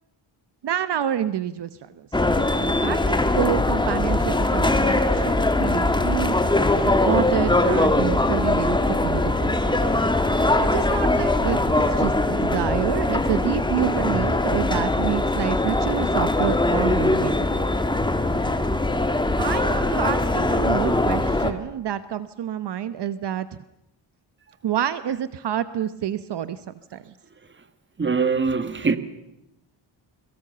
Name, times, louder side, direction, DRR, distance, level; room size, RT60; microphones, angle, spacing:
voice 1, 0.6-2.1 2.6-6.3 7.0-9.8 10.6-17.4 19.4-23.5 24.6-27.1, right 10 dB, 60° right, 1.0 m, -28 dB
sound 1, 2.1-21.5, left 2 dB, 10° left, 1.8 m, -21 dB
voice 2, 28.0-29.0, right 5 dB, 25° right, 1.7 m, -22 dB
29.5 x 22.5 x 6.9 m
wide cardioid pair, 140°, 46 cm